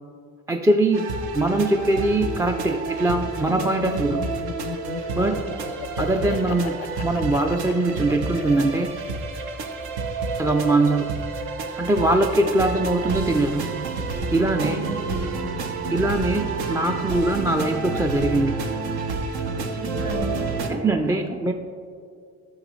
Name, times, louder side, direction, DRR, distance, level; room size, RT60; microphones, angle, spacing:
voice 1, 0.5-1.1 1.3-4.3 5.1-5.4 6.0-8.9 10.4-11.1 11.8-13.6 14.3-14.8 15.9-18.5 20.7-21.5, right 2 dB, 10° right, 4 dB, 0.4 m, -22 dB
sound 1, 0.9-20.7, right 3 dB, 70° right, 0.9 m, -29 dB
Laughter, 3.5-9.4, left 10 dB, 75° left, 0.5 m, -36 dB
voice 2, 14.6-15.4 19.6-21.4, right 2 dB, 35° right, 2 dB, 2.0 m, -34 dB
12.0 x 6.2 x 3.1 m, 2.3 s
supercardioid pair, 60°, 40 cm